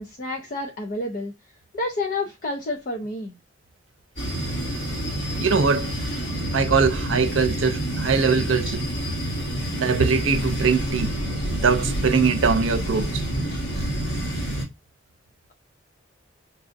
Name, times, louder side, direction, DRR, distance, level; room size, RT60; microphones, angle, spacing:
voice 1, 0.0-1.3 1.7-3.4, left 2 dB, 45° left, 0.6 m, -29 dB
sound 1, 4.2-14.6, right 1 dB, 60° left, 2.5 m, -28 dB
voice 2, 5.4-5.9 6.5-8.9 9.7-11.1 11.6-13.2, right 5 dB, 85° right, 0.6 m, -22 dB
6.6 x 2.5 x 2.5 m
head